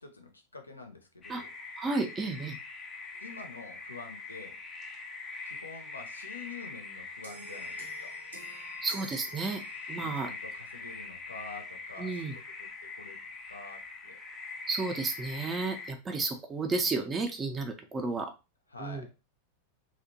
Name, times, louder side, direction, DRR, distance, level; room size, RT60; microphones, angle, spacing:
voice 1, 0.0-1.5 3.2-4.6 5.5-8.2 10.0-14.2 18.7-19.1, left 4 dB, 80° left, 5 dB, 0.5 m, -47 dB
sound 1, 1.2-15.9, left 3 dB, 25° left, 0.6 m, -43 dB
voice 2, 1.8-2.6 8.8-9.6 9.9-10.3 12.0-12.3 14.7-18.3 18.8-19.0, right 3 dB, 20° right, 5 dB, 0.4 m, -32 dB
sound 2, 7.2-10.1, right 4 dB, 70° right, 0.6 m, -51 dB
2.7 x 2.1 x 2.6 m, 0.27 s
figure-of-eight pair, 90°, 0 cm